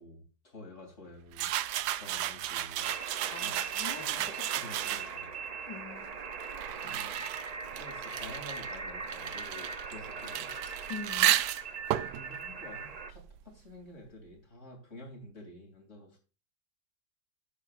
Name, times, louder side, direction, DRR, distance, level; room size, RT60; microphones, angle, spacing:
voice 1, 0.0-1.6 1.9-2.9 3.2-5.3 6.8-7.3 7.8-10.5 12.1-16.2, left 1 dB, 45° left, 3.3 m, -49 dB
sound 1, 1.3-5.3 6.1-13.5, right 13 dB, 85° right, 1.2 m, -34 dB
sound 2, 2.8-13.1, right 5 dB, 60° right, 0.4 m, -40 dB
voice 2, 3.3-4.3 5.7-6.2 6.5-6.9 10.9-11.4, left 6 dB, 80° left, 1.5 m, -44 dB
13.0 x 7.7 x 2.5 m
omnidirectional pair, 1.7 m